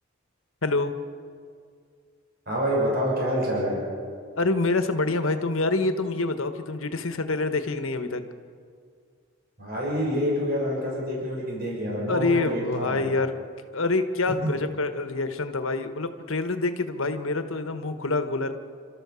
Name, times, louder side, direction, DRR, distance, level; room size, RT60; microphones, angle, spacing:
voice 1, 0.6-1.0 4.4-8.2 12.1-13.3 13.7-18.5, left 3 dB, 75° left, 8 dB, 1.3 m, -26 dB
voice 2, 2.5-3.8 9.6-13.0 14.4-14.5, equal, 50° right, -4 dB, 6.4 m, -27 dB
29.5 x 13.0 x 7.0 m, 2.1 s
head